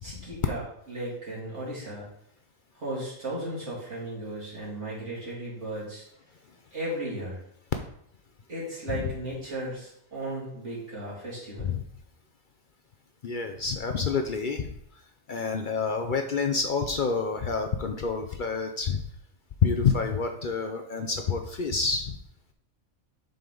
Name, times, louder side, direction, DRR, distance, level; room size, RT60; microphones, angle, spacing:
voice 1, 0.0-2.1 2.7-6.0 6.7-7.4 8.5-11.7, right 1 dB, 75° right, -6 dB, 3.2 m, -35 dB
voice 2, 13.2-14.7 15.3-19.0 19.6-22.2, left 5 dB, 50° left, 5 dB, 0.6 m, -28 dB
7.6 x 5.5 x 3.8 m, 0.75 s
omnidirectional pair, 1.2 m